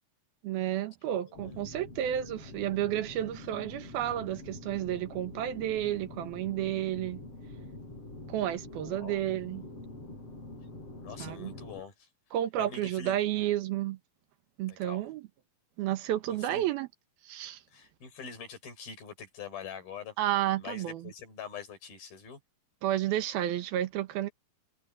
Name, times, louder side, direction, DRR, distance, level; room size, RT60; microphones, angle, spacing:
voice 1, 0.4-7.2 8.3-9.6 11.2-11.5 12.3-14.0 14.6-15.3 15.8-16.9 17.2-17.6 20.2-21.1 22.8-24.3, right 12 dB, 85° right, 3.2 m, -31 dB
voice 2, 1.3-1.7 8.8-9.2 11.0-12.1 12.6-13.2 14.7-15.0 16.4-16.7 17.7-20.2 20.6-22.4, left 6 dB, 80° left, 6.8 m, -44 dB
sound 1, 1.3-11.8, left 2 dB, 40° left, 7.8 m, -45 dB
omnidirectional pair, 4.2 m